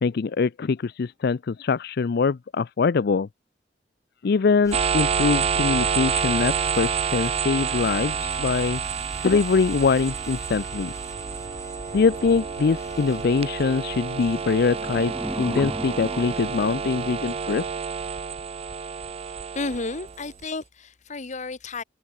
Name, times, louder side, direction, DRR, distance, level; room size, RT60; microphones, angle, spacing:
voice 1, 0.0-3.3 4.2-8.8 9.2-10.9 11.9-17.7, left 4 dB, 60° left, 0.4 m, -23 dB
sound 1, 4.6-13.3, left 1 dB, 20° left, 3.4 m, -43 dB
sound 2, 4.7-20.4, right 6 dB, 35° right, 0.4 m, -28 dB
sound 3, 14.4-17.4, equal, ahead, 0.8 m, -36 dB
voice 2, 19.5-21.8, left 3 dB, 45° left, 1.1 m, -32 dB
head